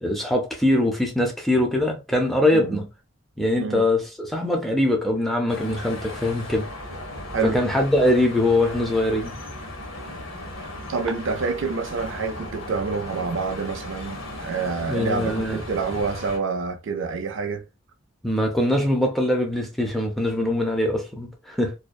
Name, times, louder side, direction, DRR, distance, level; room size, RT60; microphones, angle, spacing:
voice 1, 0.0-2.9 3.4-6.7 7.4-9.3 14.9-15.6 18.2-21.7, left 1 dB, ahead, 0.5 m, -22 dB
voice 2, 2.5-2.8 3.6-3.8 7.3-7.6 10.9-17.6, right 4 dB, 70° right, 0.4 m, -27 dB
sound 1, 5.5-16.4, left 1 dB, 80° left, 0.9 m, -36 dB
2.6 x 2.1 x 2.2 m
head